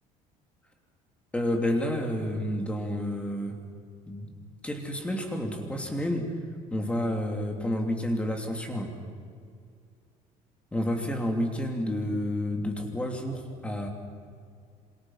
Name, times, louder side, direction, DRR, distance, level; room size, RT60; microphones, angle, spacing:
voice 1, 1.3-3.6 4.1-4.3 4.6-6.3 6.7-8.9 10.7-13.9, left 1 dB, 10° left, 2 dB, 3.0 m, -30 dB
27.5 x 27.0 x 5.8 m, 2.2 s
cardioid pair, 175°, 14 cm